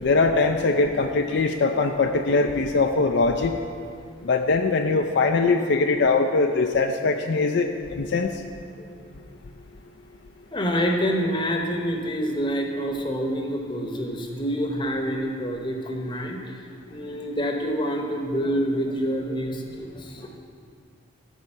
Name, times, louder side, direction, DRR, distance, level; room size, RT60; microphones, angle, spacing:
voice 1, 0.0-3.6 4.2-8.4, left 3 dB, 60° left, 5 dB, 0.4 m, -22 dB
voice 2, 8.8-9.2 10.5-16.4 16.9-20.4, equal, 25° left, 2 dB, 0.9 m, -27 dB
13.0 x 5.1 x 5.4 m, 2.2 s
head